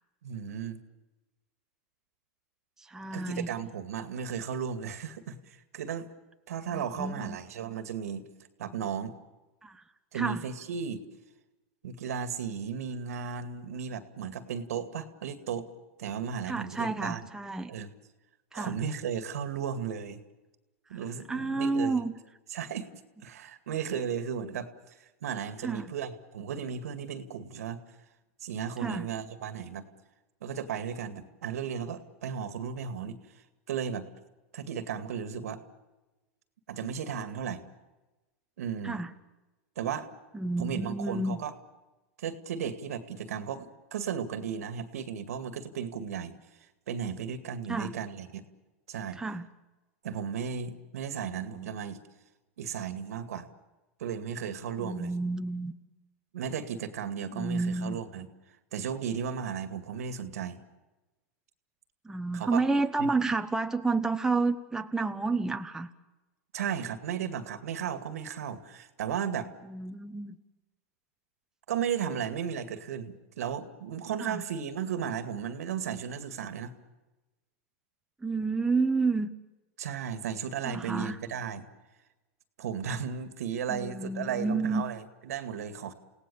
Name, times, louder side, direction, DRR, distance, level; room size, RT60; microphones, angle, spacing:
voice 1, 0.2-0.8 3.1-6.1 6.5-8.2 8.6-9.1 10.1-11.0 11.8-15.7 16.0-17.3 17.7-17.9 18.5-20.2 20.9-22.0 22.5-22.9 23.2-27.8 28.4-29.8 30.4-33.2 33.7-34.1 34.5-35.6 36.7-37.6 38.6-39.0 39.8-40.1 40.6-41.5 42.2-46.4 46.9-48.5 48.9-49.2 50.0-52.0 52.6-53.5 54.0-55.1 56.3-58.3 58.7-60.6 62.3-62.6 63.0-63.1 66.5-69.5 71.7-76.7 79.8-81.6 82.6-85.9, right 7 dB, 85° right, 11 dB, 2.2 m, -35 dB
voice 2, 2.8-3.5 6.7-7.4 9.6-9.8 10.1-10.4 16.5-17.7 18.5-18.7 20.9-21.0 21.3-22.1 25.6-25.9 28.8-29.1 38.8-39.1 40.3-41.4 47.7-47.9 49.2-49.5 54.8-55.7 57.3-58.0 62.0-65.9 69.6-70.4 74.2-74.4 78.2-79.3 80.6-81.2 83.7-84.8, right 3 dB, 5° right, 7 dB, 1.0 m, -30 dB
29.5 x 18.0 x 7.1 m, 1.1 s
supercardioid pair, 125°, 8 cm